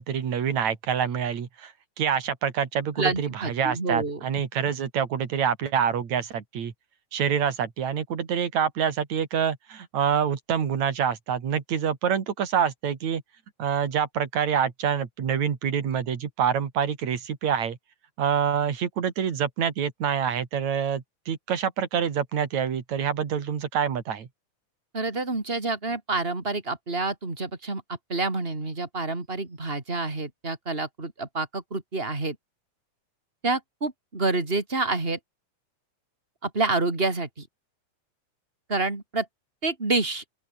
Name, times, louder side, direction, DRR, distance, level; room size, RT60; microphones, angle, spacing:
voice 1, 0.0-6.7 7.1-13.2 13.6-17.8 18.2-24.3, right 8 dB, 70° right, 3.9 m, -26 dB
voice 2, 3.0-4.2 24.9-32.4 33.4-35.2 36.4-37.5 38.7-39.3 39.6-40.2, right 3 dB, 20° right, 3.9 m, -28 dB
open air
omnidirectional pair, 3.3 m